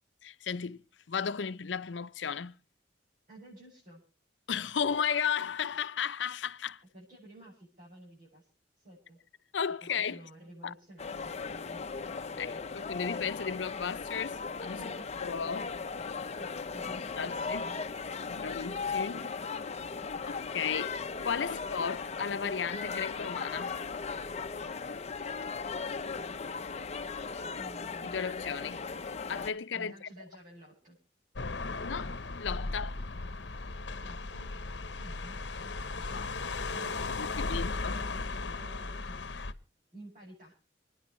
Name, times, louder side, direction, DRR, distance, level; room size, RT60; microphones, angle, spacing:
voice 1, 0.2-0.8 1.1-2.6 4.5-6.8 9.5-10.2 10.6-10.7 12.4-14.9 15.2-15.7 17.1-17.7 18.3-19.3 20.3-21.0 21.2-23.8 28.0-28.8 29.3-30.1 31.8-33.0 36.1-36.3 37.2-38.0 39.3-39.5, left 6 dB, 85° left, 0.6 m, -34 dB
voice 2, 3.3-4.0 6.9-8.5 8.8-9.2 9.8-12.0 14.8-15.2 16.4-17.8 21.5-21.6 27.6-28.1 28.4-28.5 29.7-31.0 33.9-34.5 34.9-36.3 36.7-39.2 39.9-40.6, right 1 dB, 50° right, 7.3 m, -52 dB
sound 1, 11.0-29.5, left 5 dB, 40° left, 0.7 m, -37 dB
sound 2, 31.4-39.5, left 3 dB, 70° left, 0.9 m, -36 dB
29.0 x 10.0 x 3.1 m
head